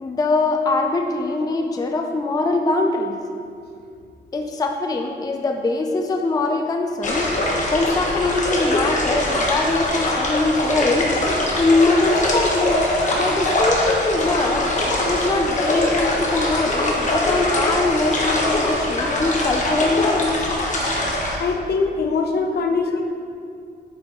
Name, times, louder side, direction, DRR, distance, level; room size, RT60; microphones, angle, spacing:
voice 1, 0.0-3.2 4.3-11.1 11.6-12.7 13.2-14.7 15.0-20.5 22.9-23.0, left 2 dB, 20° left, 4 dB, 0.4 m, -22 dB
sound 1, 7.0-21.4, left 1 dB, 40° left, 1.1 m, -22 dB
voice 2, 21.4-23.0, left 4 dB, 60° left, 4 dB, 0.7 m, -22 dB
8.3 x 6.5 x 3.0 m, 2.3 s
wide cardioid pair, 150°, 18 cm